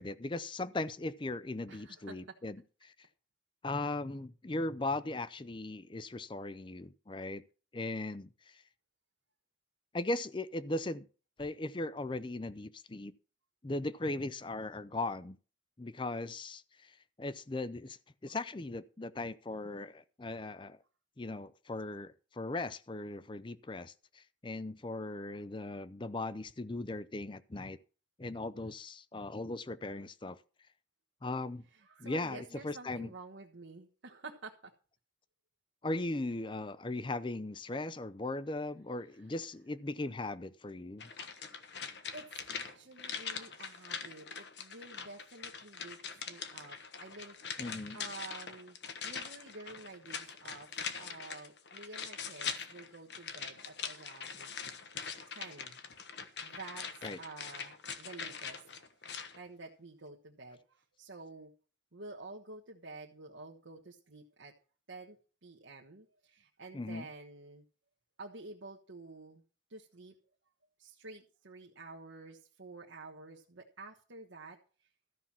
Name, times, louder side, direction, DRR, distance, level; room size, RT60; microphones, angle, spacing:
voice 1, 0.0-3.1 3.6-7.4 7.7-8.6 9.9-11.1 11.4-13.1 13.6-15.4 15.8-20.8 21.2-27.8 28.2-30.4 31.2-31.7 32.0-33.1 35.8-41.3 47.6-48.0 57.0-57.2 66.7-67.1, left 2 dB, 25° left, 0.5 m, -38 dB
voice 2, 1.7-2.3 18.3-18.4 31.7-34.7 39.1-39.2 41.6-41.8 42.1-46.0 46.3-47.3 47.9-50.7 50.9-54.5 55.3-55.8 56.4-56.8 57.2-58.6 59.4-61.5 61.9-64.5 64.9-65.2 65.4-67.6 68.2-69.4 69.7-70.1 70.8-74.6, right 3 dB, 80° right, 1.3 m, -50 dB
sound 1, 41.0-59.4 59.7-59.8, left 6 dB, 60° left, 1.2 m, -43 dB
13.5 x 5.8 x 7.4 m
head